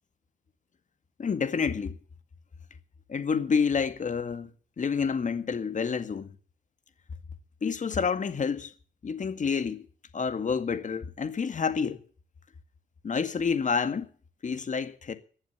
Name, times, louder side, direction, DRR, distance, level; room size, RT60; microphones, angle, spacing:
voice 1, 1.2-2.0 3.1-4.5 4.8-6.3 7.6-8.7 9.0-9.9 10.1-12.0 13.0-14.1 14.4-15.2, left 6 dB, 40° left, 2.0 m, -28 dB
20.0 x 7.2 x 7.2 m
cardioid pair, 90°, 20 cm